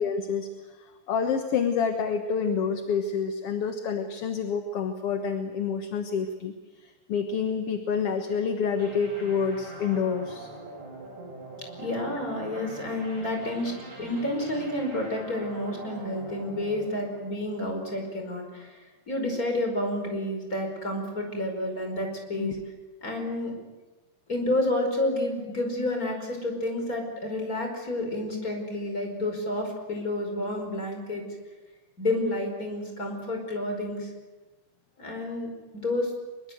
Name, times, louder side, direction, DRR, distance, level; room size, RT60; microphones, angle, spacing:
voice 1, 0.0-6.5 6.8-10.5 22.4-22.5, left 6 dB, 55° left, 6 dB, 2.0 m, -28 dB
sound 1, 8.8-18.1, right 2 dB, 65° right, 8.8 m, -43 dB
voice 2, 11.8-18.7 19.1-22.6 23.0-23.5 24.3-31.2 32.0-34.1 35.0-35.5 35.7-36.1, left 1 dB, 25° left, 3 dB, 5.4 m, -30 dB
24.0 x 23.0 x 8.0 m, 1.2 s
omnidirectional pair, 3.7 m